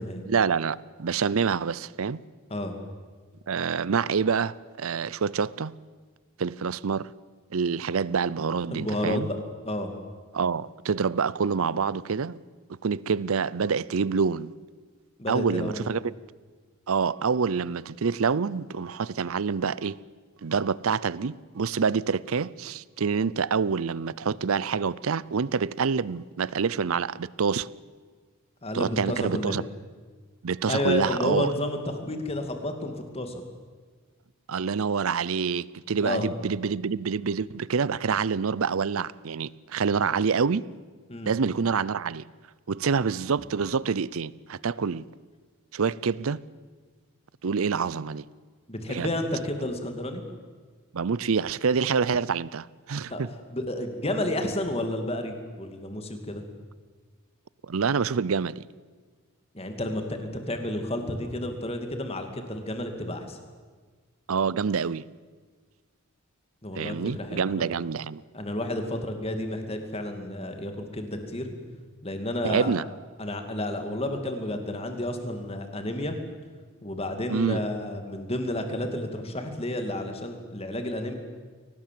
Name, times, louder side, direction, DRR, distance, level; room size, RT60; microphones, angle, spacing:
voice 1, 0.3-2.2 3.5-5.7 6.4-7.1 7.5-9.3 10.3-12.4 12.8-14.5 15.3-16.1 16.9-20.0 20.4-27.7 28.7-29.6 30.4-31.5 34.5-40.7 41.3-42.2 42.7-45.1 45.7-46.4 47.4-48.2 48.9-49.1 50.9-53.3 57.7-58.7 64.3-65.1 66.8-68.2 72.4-72.8 77.3-77.6, right 5 dB, 70° right, 0.5 m, -27 dB
voice 2, 8.7-9.4 9.6-9.9 15.2-15.9 28.6-29.6 30.7-33.4 36.0-36.3 41.1-41.3 48.7-50.2 53.1-53.2 53.5-56.4 59.5-63.4 66.6-67.7 68.3-71.5 72.0-72.7 73.2-76.2 76.8-81.1, left 1 dB, 25° left, 2.5 m, -31 dB
23.0 x 18.5 x 7.7 m
head